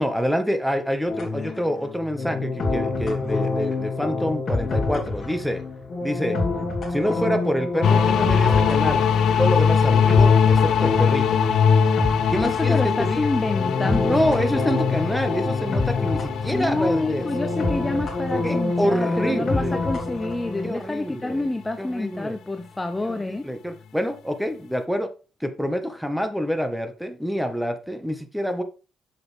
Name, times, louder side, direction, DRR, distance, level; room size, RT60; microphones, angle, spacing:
voice 1, 0.0-5.6 6.0-6.4 6.9-9.0 9.4-11.4 12.3-13.3 13.9-17.6 18.4-19.9 20.6-21.5 21.8-22.4 23.0-25.1 25.4-28.6, equal, ahead, 1.6 m, -27 dB
sound 1, 1.1-20.7, left 3 dB, 45° left, 3.2 m, -27 dB
sound 2, 7.8-20.3, left 6 dB, 75° left, 0.7 m, -22 dB
voice 2, 12.4-14.3 16.5-23.5, left 2 dB, 15° left, 0.7 m, -28 dB
7.8 x 7.1 x 3.5 m
cardioid pair, 90°, 0 cm